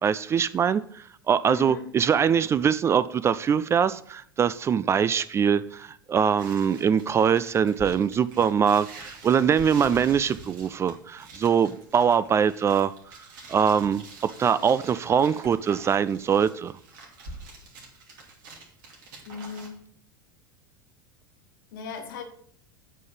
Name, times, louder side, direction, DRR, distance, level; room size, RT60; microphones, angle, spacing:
voice 1, 0.0-12.9 13.5-16.7, right 7 dB, 25° right, 0.3 m, -23 dB
voice 2, 1.5-1.9 19.2-19.9 21.7-22.2, left 7 dB, 65° left, 1.5 m, -37 dB
sound 1, 6.4-19.7, right 2 dB, 65° right, 2.5 m, -46 dB
8.3 x 5.4 x 5.5 m
figure-of-eight pair, 85°, 11 cm